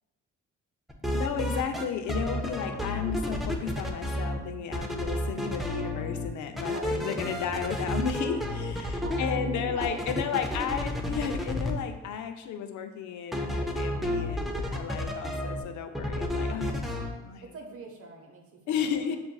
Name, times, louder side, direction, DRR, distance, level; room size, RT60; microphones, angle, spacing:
sound 1, 0.9-1.8 2.1-4.4 4.7-6.3 6.6-11.7 13.3-15.6 15.9-17.1, left 1 dB, ahead, 0.4 m, -31 dB
voice 1, 1.1-16.7 17.2-17.5 18.7-19.2, left 7 dB, 70° left, 6 dB, 0.5 m, -33 dB
voice 2, 6.6-7.0 9.0-10.7 17.5-19.2, right 3 dB, 50° right, 1 dB, 0.8 m, -42 dB
6.7 x 2.4 x 2.3 m, 1.1 s
cardioid pair, 90°, 30 cm